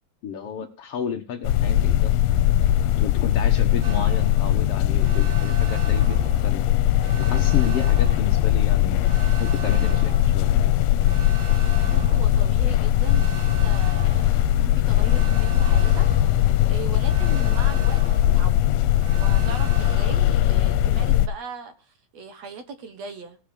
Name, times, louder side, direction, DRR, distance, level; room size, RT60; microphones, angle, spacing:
voice 1, 0.2-2.1 3.0-6.6 7.2-9.1 9.4-10.5, left 7 dB, 60° left, 6 dB, 1.7 m, -31 dB
sound 1, 1.4-21.3, left 12 dB, 85° left, 2.4 m, -20 dB
sound 2, 3.8-20.5, right 5 dB, 85° right, 3.9 m, -38 dB
voice 2, 11.8-18.9 19.2-23.4, right 4 dB, 60° right, 8 dB, 2.2 m, -39 dB
18.0 x 7.5 x 5.1 m, 0.33 s
omnidirectional pair, 3.9 m